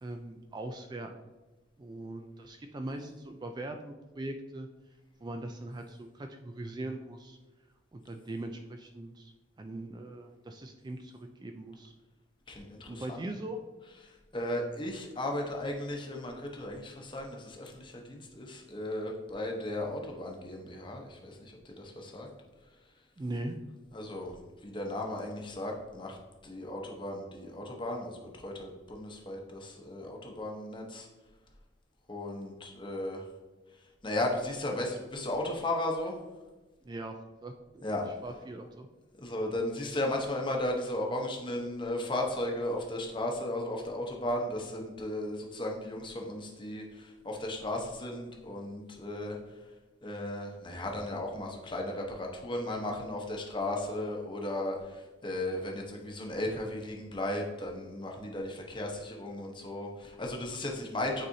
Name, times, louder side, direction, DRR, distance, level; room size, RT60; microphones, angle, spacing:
voice 1, 0.0-1.1 1.8-4.7 5.2-7.4 7.9-9.3 9.6-11.9 12.9-13.6 23.2-23.6 36.8-37.2 37.4-37.8 38.2-38.9, right 2 dB, 20° right, 5 dB, 0.3 m, -40 dB
voice 2, 12.5-13.2 14.0-22.3 23.9-24.3 24.6-26.2 26.4-31.1 32.1-33.2 34.0-36.2 37.8-38.1 39.2-49.4 50.0-61.3, left 1 dB, 25° left, 1 dB, 0.9 m, -35 dB
9.0 x 4.1 x 2.7 m, 1.2 s
head